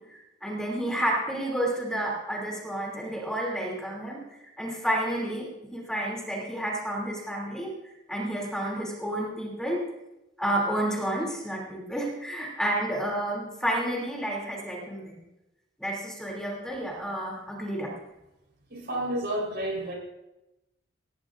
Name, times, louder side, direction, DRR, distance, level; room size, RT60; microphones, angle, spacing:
voice 1, 0.0-9.9 10.4-15.2 15.8-17.9, right 1 dB, 5° left, -2 dB, 2.9 m, -30 dB
voice 2, 18.7-19.9, right 1 dB, 55° right, -1 dB, 4.3 m, -30 dB
18.5 x 17.5 x 2.6 m, 0.95 s
head